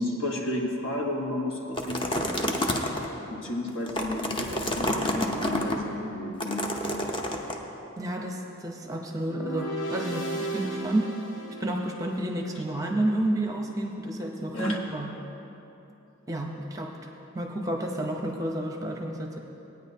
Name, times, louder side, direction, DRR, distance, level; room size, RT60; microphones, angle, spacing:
voice 1, 0.0-2.3 3.3-6.7 14.5-14.8, left 1 dB, 65° left, -1 dB, 1.4 m, -32 dB
sound 1, 1.7-3.1 3.7-5.7 6.4-7.5, left 1 dB, 25° left, 0.7 m, -29 dB
voice 2, 8.0-11.1 11.6-15.1 16.3-19.4, right 1 dB, 15° right, 1 dB, 0.7 m, -30 dB
sound 2, 9.2-12.5, right 2 dB, 85° left, 2.2 m, -35 dB
18.0 x 9.4 x 2.8 m, 3.0 s
head